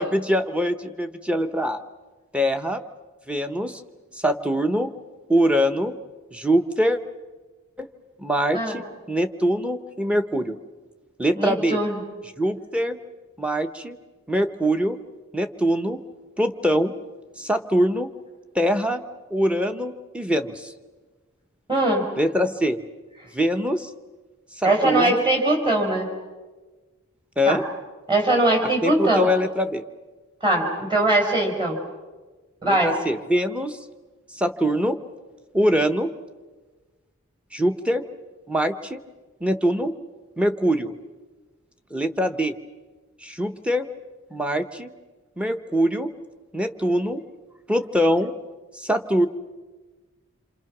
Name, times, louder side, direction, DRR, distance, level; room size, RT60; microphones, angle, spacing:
voice 1, 0.0-1.8 2.3-2.8 3.3-3.8 4.1-4.9 5.3-6.0 6.3-7.0 7.8-7.9 8.2-10.6 11.2-11.8 12.4-13.0 13.4-14.0 14.3-15.0 15.3-16.0 16.4-16.9 17.4-18.1 18.5-19.0 19.3-20.7 22.2-22.8 23.3-23.9 24.6-25.3 27.4-27.6 28.8-29.8 32.6-33.8 34.3-35.0 35.5-36.1 37.5-38.0 38.5-39.0 39.4-39.9 40.4-40.9 41.9-42.6 43.2-43.9 44.3-44.9 45.4-46.1 46.5-47.2 47.7-48.3 48.8-49.3, equal, 5° right, 8 dB, 0.9 m, -23 dB
voice 2, 11.3-12.0 21.7-22.0 24.6-26.1 27.5-27.6 28.1-29.3 30.4-31.8 32.6-32.9, right 1 dB, 20° right, 2 dB, 4.5 m, -21 dB
28.0 x 26.0 x 6.1 m, 1.3 s
head